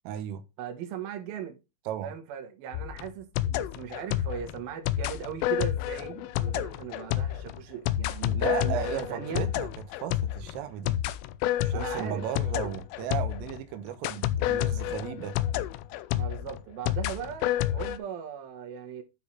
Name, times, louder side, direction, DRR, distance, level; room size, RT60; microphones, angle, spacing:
voice 1, 0.1-0.4 1.9-2.1 8.3-9.7 10.0-11.0 11.6-15.4, right 10 dB, 90° right, 3.6 m, -35 dB
voice 2, 0.6-1.6 2.0-9.5 11.7-12.2 16.1-19.0, right 8 dB, 65° right, 2.5 m, -38 dB
sound 1, 2.7-13.6 14.0-18.0, left 12 dB, 85° left, 3.1 m, -30 dB
12.0 x 4.0 x 4.9 m
omnidirectional pair, 5.9 m